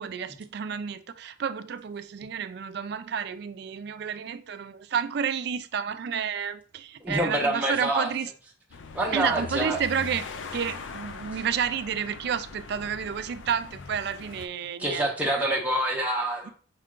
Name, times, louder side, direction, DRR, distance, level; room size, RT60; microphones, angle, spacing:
voice 1, 0.0-8.3 9.1-10.3 10.5-15.5, right 7 dB, 55° right, 11 dB, 0.3 m, -31 dB
voice 2, 7.0-8.1 8.9-9.8 14.8-16.5, right 1 dB, 10° right, -2 dB, 0.7 m, -26 dB
sound 1, 8.7-14.5, left 4 dB, 70° left, 0.5 m, -41 dB
5.5 x 2.4 x 3.6 m, 0.42 s
head